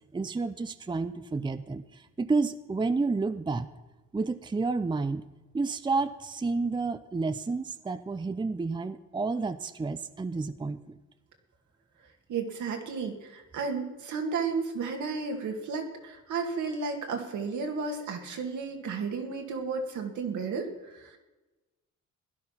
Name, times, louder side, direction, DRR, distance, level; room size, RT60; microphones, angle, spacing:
voice 1, 0.1-3.7 4.1-5.2 5.5-11.0, right 3 dB, 15° right, 11 dB, 0.6 m, -30 dB
voice 2, 12.3-21.2, right 4 dB, 75° right, 3 dB, 2.3 m, -33 dB
16.5 x 11.0 x 5.9 m, 1.1 s
cardioid pair, 90°, 30 cm